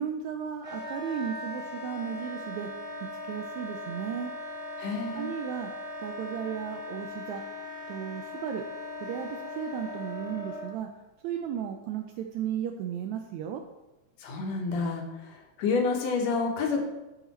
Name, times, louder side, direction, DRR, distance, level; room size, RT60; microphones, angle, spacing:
voice 1, 0.0-2.7 3.2-4.3 5.1-5.7 6.0-7.4 7.9-8.6 9.0-10.9 11.2-13.6, right 9 dB, 80° right, 4 dB, 1.7 m, -35 dB
Wind instrument woodwind instrument, 0.6-10.7, left 2 dB, 15° right, 1.9 m, -39 dB
voice 2, 4.8-5.3 14.2-15.3 15.6-16.8, left 4 dB, 65° left, 2 dB, 2.1 m, -29 dB
11.0 x 4.9 x 4.2 m, 1.0 s
omnidirectional pair, 3.7 m